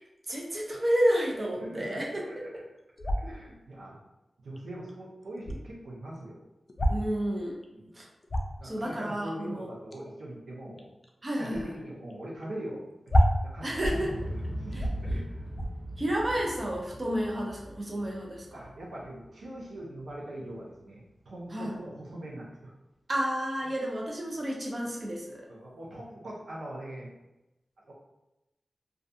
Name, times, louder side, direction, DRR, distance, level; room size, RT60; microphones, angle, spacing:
voice 1, 0.3-2.2 6.9-7.5 8.0-8.1 8.6-9.7 11.2-11.6 13.6-14.2 16.0-18.4 21.5-21.7 23.1-25.4, equal, 45° right, -2 dB, 0.6 m, -30 dB
voice 2, 1.6-2.6 3.2-4.0 4.4-6.4 7.7-7.9 8.6-10.9 11.4-12.8 13.4-13.8 14.4-15.4 18.5-22.7 25.5-27.1 27.9-28.0, right 1 dB, 85° right, -4 dB, 0.5 m, -42 dB
sound 1, 3.0-3.4 4.6-4.7 4.9-5.0 5.2-5.6 6.7-7.1 7.6-7.7 8.0-8.6 9.9-10.1 10.8-11.1 11.4-11.7 12.1-12.2 12.4-12.5 13.1-14.0 14.4-14.5 14.7-15.2 15.5-15.7, equal, 50° left, 0.4 m, -27 dB
Explosion, 13.7-19.8 20.1-20.2, equal, ahead, 0.8 m, -40 dB
2.3 x 2.3 x 2.6 m, 0.94 s
cardioid pair, 45°, 0 cm